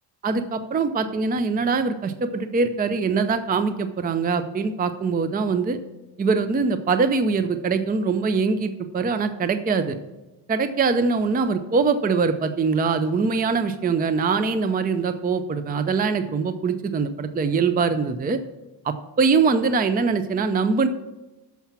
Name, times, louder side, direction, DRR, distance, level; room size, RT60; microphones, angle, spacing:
voice 1, 0.2-5.8 6.2-10.0 10.5-18.4 18.8-20.9, right 4 dB, 20° right, 10 dB, 0.5 m, -23 dB
7.0 x 5.8 x 7.2 m, 1.1 s
cardioid pair, 90°, 46 cm